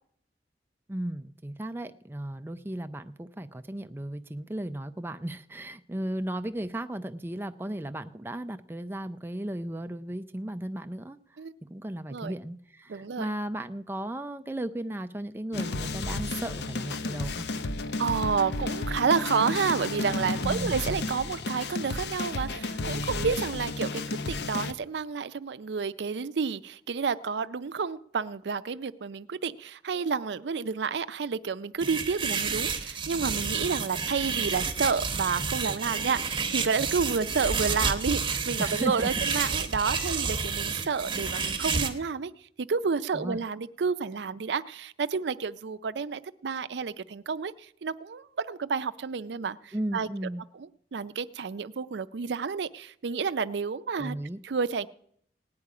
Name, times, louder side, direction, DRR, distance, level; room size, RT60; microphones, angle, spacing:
voice 1, 0.9-11.2 11.6-17.5 20.4-20.8 38.6-39.1 39.9-40.2 43.1-43.4 49.7-50.4 54.0-54.4, right 1 dB, 15° right, 9 dB, 0.4 m, -35 dB
voice 2, 12.9-13.3 18.0-42.3 42.6-50.1 50.6-54.2 54.4-54.9, right 5 dB, 80° right, 13 dB, 0.5 m, -30 dB
sound 1, 15.5-24.7, left 3 dB, 70° left, 0.7 m, -32 dB
sound 2, 31.8-41.9, right 5 dB, 30° right, 1.2 m, -30 dB
17.5 x 9.6 x 4.9 m, 0.67 s
head